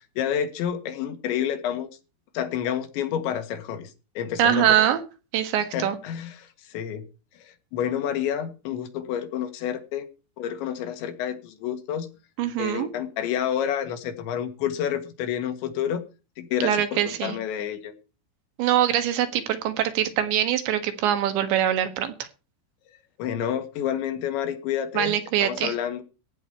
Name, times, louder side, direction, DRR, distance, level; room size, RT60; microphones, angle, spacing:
voice 1, 0.2-1.9 2.3-4.9 5.7-7.0 7.4-10.1 10.4-12.1 12.6-16.0 16.4-17.9 23.2-25.1 25.4-26.0, left 9 dB, 75° left, 8 dB, 3.9 m, -29 dB
voice 2, 4.4-5.0 5.3-6.0 12.4-12.9 16.6-17.4 18.6-22.3 25.0-25.7, right 10 dB, 75° right, 9 dB, 3.8 m, -23 dB
15.5 x 5.1 x 9.5 m, 0.32 s
omnidirectional pair, 5.3 m